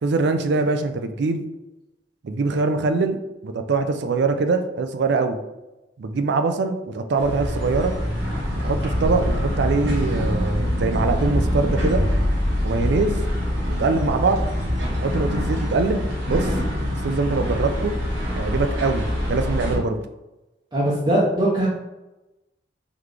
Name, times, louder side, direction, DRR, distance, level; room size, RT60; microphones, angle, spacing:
voice 1, 0.0-1.4 2.2-3.2 3.4-5.4 6.0-7.9 8.6-12.0 12.6-13.2 13.8-14.4 15.0-16.5 17.0-17.9 18.4-20.0, right 3 dB, 65° right, 7 dB, 0.4 m, -23 dB
sound 1, 7.2-19.8, equal, 80° right, 1.3 m, -24 dB
voice 2, 20.7-21.7, right 1 dB, 25° right, -7 dB, 0.7 m, -20 dB
3.9 x 3.0 x 3.3 m, 1.0 s
head